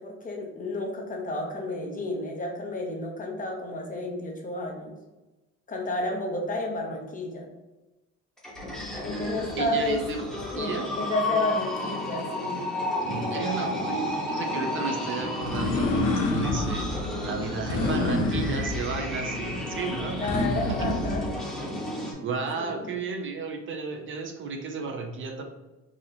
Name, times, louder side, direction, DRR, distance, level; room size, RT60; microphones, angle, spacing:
voice 1, 0.0-4.9 5.7-7.5 9.0-10.0 10.5-12.7 13.0-13.8 20.2-21.3 22.6-22.9, left 1 dB, 30° left, 1 dB, 0.7 m, -31 dB
sound 1, 8.4-22.1, left 1 dB, ahead, 1.0 m, -32 dB
sound 2, 8.6-10.6 15.4-21.3, left 2 dB, 80° left, 0.7 m, -29 dB
voice 2, 9.6-10.3 10.6-10.9 13.1-16.9 17.2-20.3 20.9-21.0 22.2-25.4, right 4 dB, 45° right, 4 dB, 0.5 m, -33 dB
4.0 x 2.8 x 2.6 m, 1.1 s
cardioid pair, 150°, 29 cm